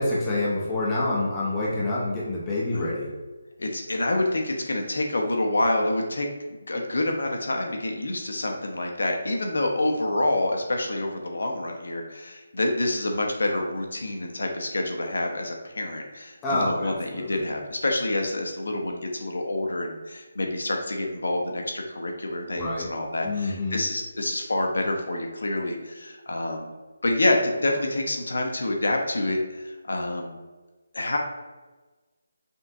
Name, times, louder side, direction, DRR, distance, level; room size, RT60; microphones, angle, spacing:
voice 1, 0.0-3.1 16.4-17.5 22.5-22.9 23.2-23.8, left 2 dB, 10° left, -6 dB, 0.5 m, -27 dB
voice 2, 3.6-6.3 6.6-26.7 27.0-30.4 30.9-31.2, left 2 dB, 80° left, 2 dB, 0.8 m, -27 dB
5.4 x 2.4 x 2.7 m, 1.2 s
hypercardioid pair, 180°, 0 cm